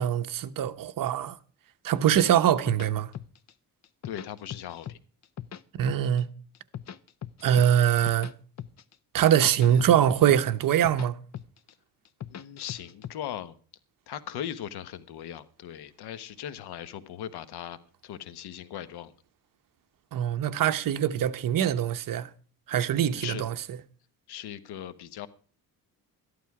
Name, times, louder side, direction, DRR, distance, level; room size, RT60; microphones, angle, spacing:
voice 1, 0.0-1.4 1.8-3.1 5.8-6.3 7.4-8.3 9.1-11.2 20.1-22.3 22.7-23.6, right 10 dB, 60° right, 1.0 m, -23 dB
sound 1, 2.1-3.5 3.8-5.0 5.2-6.2 6.5-8.3 8.6-8.9 9.2-11.1 11.3-11.7 12.0-13.1, left 10 dB, 45° left, 0.7 m, -40 dB
voice 2, 4.0-5.0 12.3-13.5 14.1-19.1 22.9-23.4 24.3-25.3, left 10 dB, 80° left, 1.3 m, -39 dB
13.5 x 12.0 x 4.8 m
cardioid pair, 120°, 38 cm